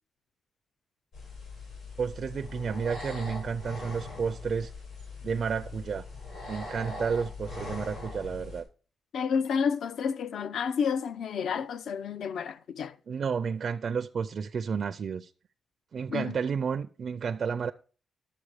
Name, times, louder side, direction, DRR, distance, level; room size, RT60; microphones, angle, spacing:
sound 1, 1.1-8.6, left 3 dB, 85° left, 5.8 m, -41 dB
voice 1, 2.0-4.7 5.2-6.1 6.5-8.7 13.1-15.3 15.9-17.7, right 6 dB, 45° right, 0.4 m, -31 dB
voice 2, 9.1-12.9 16.1-16.4, left 6 dB, 70° left, 0.4 m, -30 dB
11.5 x 7.0 x 4.9 m
wide cardioid pair, 165°, 0 cm